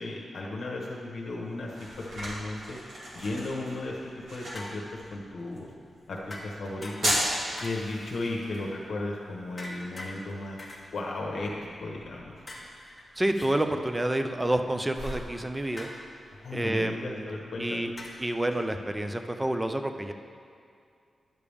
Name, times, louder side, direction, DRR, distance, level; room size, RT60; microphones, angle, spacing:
voice 1, 0.0-2.8 3.1-4.0 4.3-5.7 6.1-7.2 7.6-10.6 10.9-12.3 16.3-17.9, left 2 dB, 60° left, -2 dB, 1.0 m, -35 dB
sound 1, 1.0-18.6, equal, 85° right, 2.1 m, -39 dB
sound 2, 4.5-5.1 6.3-7.3 7.6-8.0 9.6-10.1 10.6-10.8 12.5-13.5 15.8-16.1 18.0-18.3, left 1 dB, 20° left, 1.1 m, -43 dB
voice 2, 13.2-15.9 16.5-17.9 18.2-20.1, right 1 dB, 10° right, 7 dB, 0.4 m, -29 dB
10.5 x 6.8 x 3.5 m, 2.3 s
wide cardioid pair, 155°, 0 cm